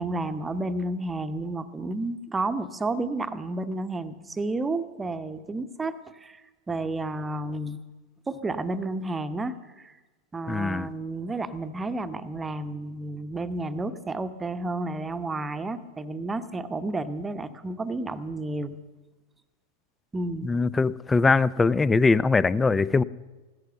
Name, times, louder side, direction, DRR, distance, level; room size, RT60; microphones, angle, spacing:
voice 1, 0.0-6.4 6.7-7.8 8.3-10.0 10.3-18.8 20.1-20.5, right 2 dB, 15° right, 12 dB, 0.9 m, -31 dB
voice 2, 10.5-10.9 20.4-23.0, left 4 dB, 10° left, 20 dB, 0.4 m, -22 dB
16.0 x 12.5 x 6.9 m, 1.2 s
figure-of-eight pair, 90°, 0 cm